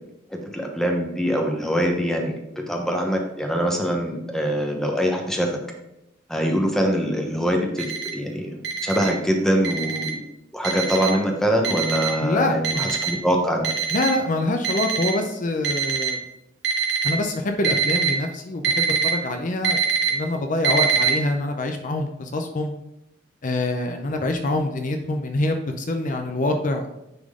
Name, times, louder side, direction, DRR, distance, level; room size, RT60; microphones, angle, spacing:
voice 1, 0.3-2.3 2.7-5.5 6.3-8.5 8.8-10.2 10.5-13.7, equal, 5° left, 1 dB, 1.0 m, -23 dB
Alarm, 7.8-8.1 8.6-9.1 9.6-10.1 10.6-11.1 11.6-12.1 12.6-13.1 13.6-14.1 14.6-15.1 15.6-16.1 16.6-17.1 17.6-18.1 18.6-19.1 19.6-20.1 20.6-21.1, right 6 dB, 65° right, 1.1 m, -23 dB
voice 2, 12.2-13.0 13.9-16.2 17.0-22.7 23.4-26.9, left 2 dB, 45° left, 5 dB, 0.6 m, -25 dB
9.7 x 3.7 x 3.7 m, 0.88 s
head